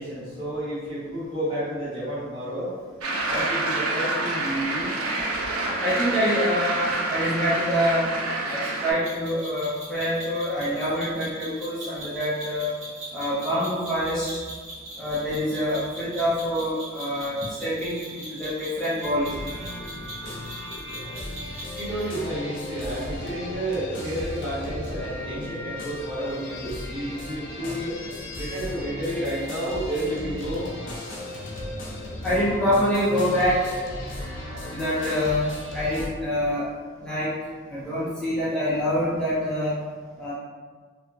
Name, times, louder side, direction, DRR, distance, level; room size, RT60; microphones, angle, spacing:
voice 1, 0.0-2.7 3.2-4.9 21.7-28.0 28.3-30.6, right 1 dB, 25° right, -13 dB, 1.4 m, -31 dB
sound 1, 3.0-8.9, right 2 dB, 90° right, 0.5 m, -27 dB
voice 2, 5.8-8.1 8.5-12.7 13.1-14.3 15.0-19.3 32.2-33.7 34.7-36.7 37.0-37.3 37.7-39.8 40.2-40.3, equal, 5° left, -11 dB, 0.4 m, -25 dB
sound 2, 9.0-22.1, right 1 dB, 60° right, 1.0 m, -40 dB
sound 3, 19.0-36.1, left 1 dB, 60° left, 0.5 m, -36 dB
2.7 x 2.2 x 2.6 m, 1.5 s
head